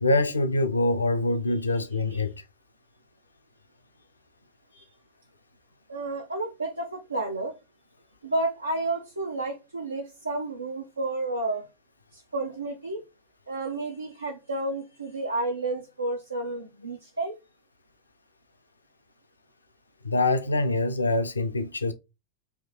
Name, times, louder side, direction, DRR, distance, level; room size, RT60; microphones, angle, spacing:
voice 1, 0.0-2.3 20.0-21.9, left 2 dB, 80° left, 0.5 m, -24 dB
voice 2, 5.9-7.6 8.2-11.7 12.1-13.0 13.5-17.3, right 2 dB, 80° right, 0.6 m, -31 dB
3.5 x 2.7 x 4.1 m
figure-of-eight pair, 90°, 0 cm